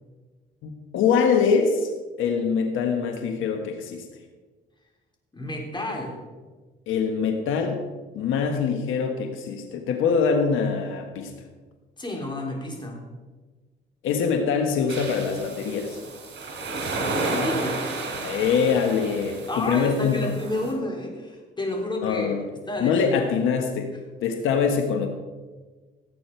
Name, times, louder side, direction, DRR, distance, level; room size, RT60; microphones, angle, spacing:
voice 1, 0.6-1.9 2.2-4.0 6.9-7.8 8.1-11.3 14.0-16.0 18.2-20.3 22.0-22.4 22.8-23.9 24.2-25.1, left 6 dB, 90° left, 5 dB, 1.3 m, -24 dB
voice 2, 5.3-6.2 12.0-13.1 17.2-17.8 19.5-22.4 22.7-23.3, left 1 dB, 25° left, 0 dB, 3.5 m, -30 dB
sound 1, 14.9-20.7, right 2 dB, 65° right, 3.9 m, -32 dB
17.0 x 8.5 x 4.5 m, 1.3 s
cardioid pair, 90°, 20 cm